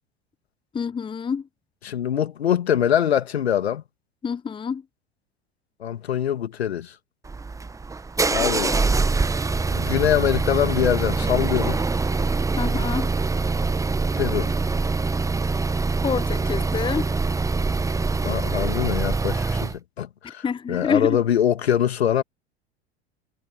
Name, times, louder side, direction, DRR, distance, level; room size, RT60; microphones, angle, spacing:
voice 1, 0.7-1.5 4.2-4.8 12.6-13.1 16.0-17.1 20.4-21.2, left 6 dB, 15° left, 1.0 m, -27 dB
voice 2, 1.8-3.8 5.8-6.9 8.3-8.8 9.7-11.8 14.2-14.5 18.2-22.2, left 10 dB, 70° left, 2.3 m, -23 dB
sound 1, 7.2-19.8, right 3 dB, 10° right, 1.2 m, -24 dB
figure-of-eight pair, 80°, 32 cm